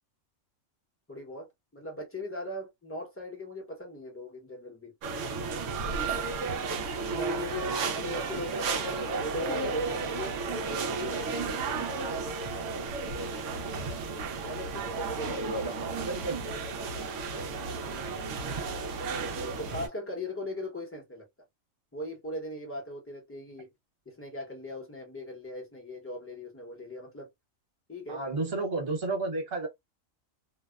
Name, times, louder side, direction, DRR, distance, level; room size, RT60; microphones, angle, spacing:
voice 1, 1.1-4.9 7.1-10.3 10.7-11.5 14.4-15.7 16.1-16.2 17.3-18.0 18.5-21.3 21.9-23.7 24.1-27.3 27.9-28.2, left 1 dB, 15° left, 0.7 m, -39 dB
sound 1, 5.0-19.9, right 4 dB, 70° right, 0.9 m, -33 dB
voice 2, 15.1-16.4 28.1-29.7, right 3 dB, 50° right, 1.3 m, -32 dB
2.6 x 2.0 x 2.2 m
omnidirectional pair, 1.4 m